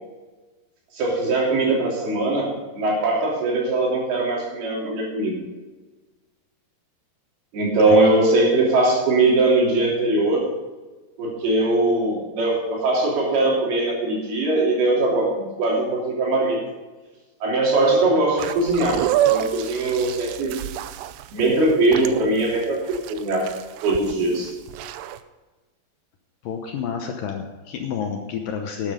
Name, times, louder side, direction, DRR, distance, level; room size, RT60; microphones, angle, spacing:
voice 1, 0.9-5.4 7.5-10.5 11.2-16.6 17.4-20.6 21.3-23.5 23.8-24.5, right 2 dB, 65° right, -2 dB, 5.0 m, -21 dB
sound 1, 18.4-25.2, right 13 dB, 90° right, 2.7 m, -28 dB
voice 2, 26.4-28.9, left 7 dB, 70° left, 4 dB, 2.2 m, -29 dB
12.5 x 9.7 x 5.1 m, 1.2 s
omnidirectional pair, 4.8 m